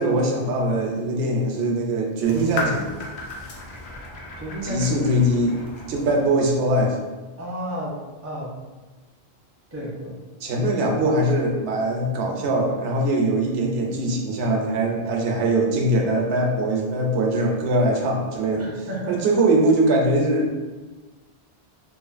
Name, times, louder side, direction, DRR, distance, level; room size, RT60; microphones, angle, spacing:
voice 1, 0.0-2.9 4.6-5.6 5.9-7.0 10.4-20.6, right 1 dB, 85° right, 0 dB, 0.8 m, -22 dB
sound 1, 2.2-6.2, left 2 dB, 80° left, 0.9 m, -34 dB
voice 2, 4.4-5.3 7.4-7.9 8.2-8.5 9.7-10.2 18.5-19.2, equal, 20° right, -4 dB, 0.4 m, -32 dB
2.7 x 2.4 x 2.4 m, 1.2 s
omnidirectional pair, 1.1 m